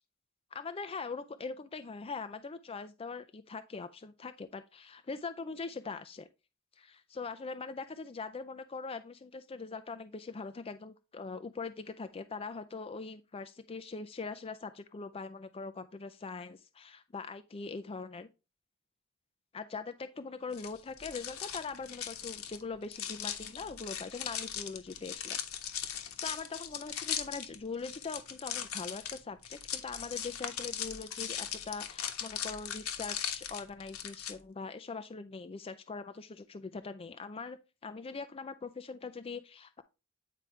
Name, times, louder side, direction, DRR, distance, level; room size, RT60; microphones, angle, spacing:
voice 1, 0.5-6.3 6.8-18.3 19.5-25.4 25.8-25.9 26.2-37.6 37.8-39.8, left 4 dB, 25° left, 0.5 m, -42 dB
sound 1, 20.5-34.3, left 9 dB, 90° left, 1.4 m, -39 dB
9.2 x 4.9 x 3.2 m
head